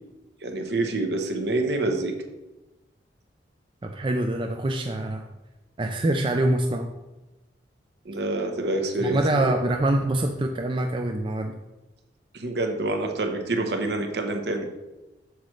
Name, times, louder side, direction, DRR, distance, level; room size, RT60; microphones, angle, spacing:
voice 1, 0.4-2.1 8.0-9.5 12.3-14.7, right 2 dB, 60° right, 4 dB, 1.0 m, -27 dB
voice 2, 3.8-5.3 5.8-6.9 9.0-11.6, right 1 dB, 25° right, 3 dB, 0.4 m, -25 dB
8.0 x 3.2 x 6.3 m, 1.1 s
head